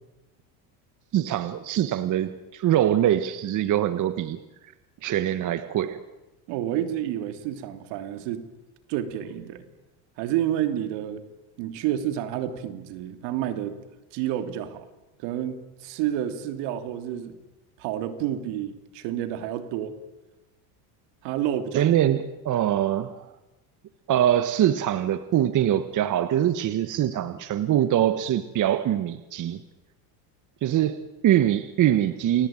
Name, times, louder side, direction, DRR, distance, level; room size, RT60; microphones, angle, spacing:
voice 1, 1.1-4.4 5.0-6.0 21.7-23.3 24.1-29.6 30.6-32.5, right 11 dB, 45° right, 12 dB, 1.4 m, -23 dB
voice 2, 6.5-8.5 8.9-9.7 10.2-11.2 11.6-13.8 14.1-14.8 15.2-17.4 17.8-19.9 21.2-21.9, right 11 dB, 70° right, 10 dB, 3.0 m, -29 dB
29.5 x 19.5 x 9.0 m, 1.1 s
supercardioid pair, 115°, 44 cm